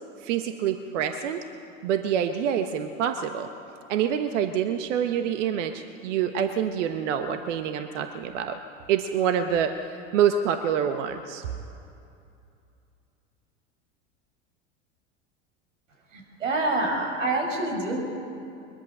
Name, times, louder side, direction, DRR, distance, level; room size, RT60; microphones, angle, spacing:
voice 1, 0.2-1.4 1.8-3.5 3.9-8.6 8.9-11.5, right 8 dB, 75° right, 7 dB, 1.2 m, -26 dB
voice 2, 16.1-18.0, right 2 dB, 90° right, 1 dB, 5.3 m, -27 dB
22.0 x 22.0 x 6.7 m, 2.7 s
hypercardioid pair, 90°, 37 cm